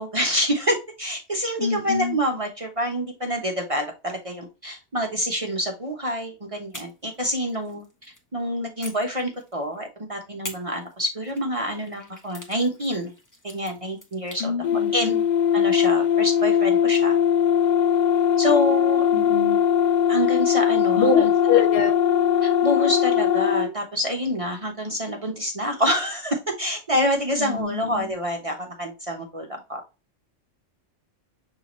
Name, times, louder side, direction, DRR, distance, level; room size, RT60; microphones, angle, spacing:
voice 1, 0.0-13.1 13.4-14.5 14.9-15.2 15.5-17.2 18.4-19.1 20.1-21.6 22.4-29.8, equal, 35° right, 2 dB, 0.7 m, -27 dB
voice 2, 1.6-2.2 14.4-15.2 19.1-19.6 21.0-22.0 27.4-28.1, left 5 dB, 60° left, 7 dB, 1.0 m, -25 dB
sound 1, 6.7-8.3 8.8-9.8 10.4-14.5, left 1 dB, 15° left, 0.7 m, -44 dB
sound 2, 14.6-23.7, left 9 dB, 85° left, 0.4 m, -20 dB
6.5 x 2.7 x 2.9 m, 0.28 s
omnidirectional pair, 1.3 m